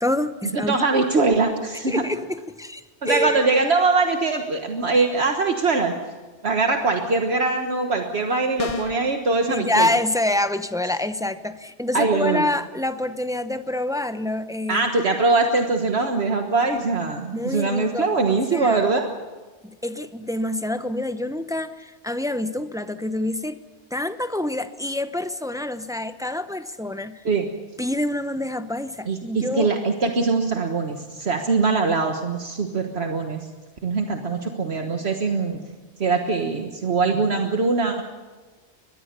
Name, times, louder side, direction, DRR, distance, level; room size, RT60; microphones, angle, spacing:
voice 1, 0.0-0.8 1.9-3.4 9.5-14.9 17.3-18.8 19.6-23.6 23.9-27.2 27.8-29.7, left 1 dB, 5° right, 10 dB, 0.7 m, -27 dB
voice 2, 0.5-2.0 3.0-5.9 6.4-9.9 11.9-12.5 14.7-19.1 27.3-27.5 29.1-33.5 33.8-35.6 36.0-38.0, right 3 dB, 65° right, 4 dB, 1.6 m, -22 dB
sound 1, 8.6-9.1, left 4 dB, 35° left, 0.9 m, -29 dB
23.0 x 21.0 x 6.8 m, 1.3 s
omnidirectional pair, 1.2 m